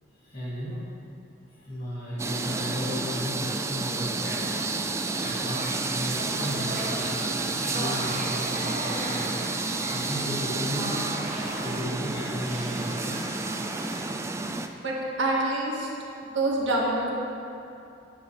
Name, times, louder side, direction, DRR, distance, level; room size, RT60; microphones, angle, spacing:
voice 1, 0.2-0.8 1.5-4.7 5.2-11.1 11.6-13.2, equal, 55° left, -13 dB, 2.9 m, -35 dB
sound 1, 2.2-14.7, right 3 dB, 15° right, 0.3 m, -30 dB
sound 2, 5.2-11.9 12.2-14.1, right 1 dB, 40° right, 1.8 m, -37 dB
voice 2, 14.8-15.9 16.3-17.1, right 2 dB, 70° right, -3 dB, 1.7 m, -26 dB
13.5 x 10.0 x 3.3 m, 2.6 s
head